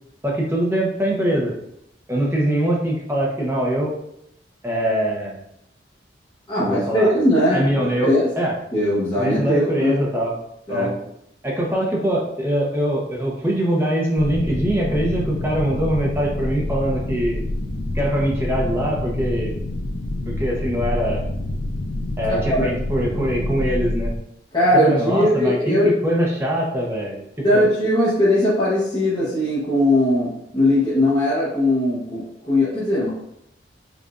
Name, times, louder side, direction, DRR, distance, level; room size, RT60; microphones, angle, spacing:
voice 1, 0.2-1.5 2.1-3.9 4.6-5.4 6.6-7.1 7.5-8.5 9.2-10.3 10.7-10.9 11.4-17.4 17.9-19.6 20.3-21.2 22.2-24.1 24.7-27.7, right 1 dB, 15° right, -3 dB, 0.7 m, -23 dB
voice 2, 6.5-8.3 8.7-9.9 10.7-10.9 22.3-22.7 24.5-25.9 27.4-33.1, left 1 dB, 25° left, -10 dB, 0.9 m, -19 dB
sound 1, 14.2-24.2, left 1 dB, 75° left, 0.5 m, -27 dB
4.9 x 2.5 x 2.4 m, 0.77 s
head